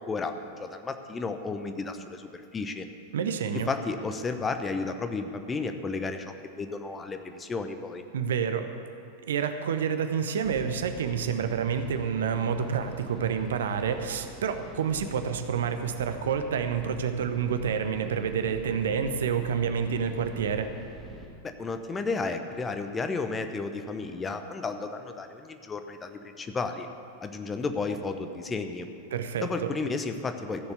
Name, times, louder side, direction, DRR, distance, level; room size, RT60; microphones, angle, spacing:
voice 1, 0.0-2.9 3.5-8.0 21.4-26.9 27.2-28.9 29.4-30.7, left 4 dB, 15° left, 7 dB, 0.9 m, -33 dB
voice 2, 3.1-3.7 8.1-8.7 9.3-20.7 29.1-29.7, right 7 dB, 60° right, 8 dB, 0.8 m, -28 dB
sound 1, 10.4-21.3, right 1 dB, 5° right, 2.3 m, -45 dB
14.5 x 7.1 x 8.1 m, 2.5 s
figure-of-eight pair, 90°, 0 cm